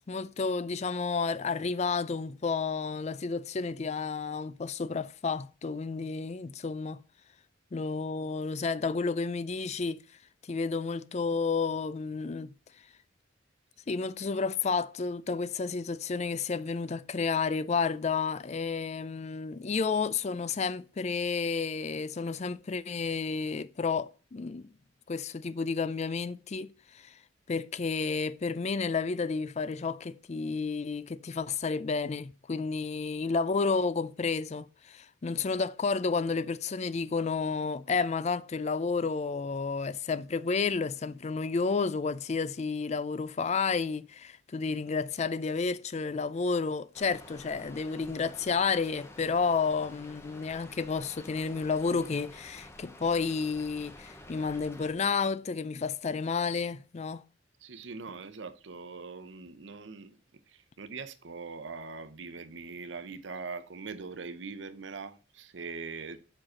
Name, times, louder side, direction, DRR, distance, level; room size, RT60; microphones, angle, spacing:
voice 1, 0.0-7.0 7.7-10.0 10.5-12.5 13.9-24.7 25.1-26.7 27.5-57.2, left 4 dB, 35° left, 0.4 m, -31 dB
Rain, 46.9-54.9, left 1 dB, 15° left, 0.9 m, -50 dB
voice 2, 57.6-60.2 60.5-66.2, right 4 dB, 65° right, 0.8 m, -42 dB
5.8 x 4.9 x 6.3 m
head